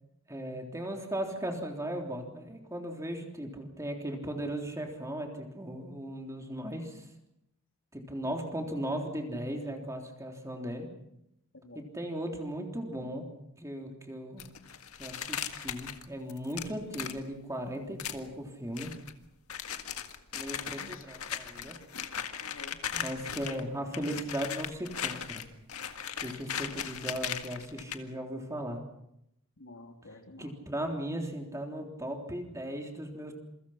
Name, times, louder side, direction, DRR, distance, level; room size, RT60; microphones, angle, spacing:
voice 1, 0.3-7.0 7.9-10.9 11.7-13.3 13.6-14.5 15.0-18.9 20.3-21.8 22.9-25.4 26.2-28.8 30.4-33.3, right 1 dB, 15° right, 2 dB, 3.4 m, -37 dB
voice 2, 11.5-11.9 20.8-21.1 22.4-22.8 29.6-30.5, left 2 dB, 60° left, 3 dB, 3.3 m, -50 dB
sound 1, 14.4-17.2 18.0-18.2 18.8-19.1 19.5-23.6 23.9-28.0, left 8 dB, 80° left, 1.8 m, -38 dB
27.5 x 23.5 x 5.8 m, 0.79 s
head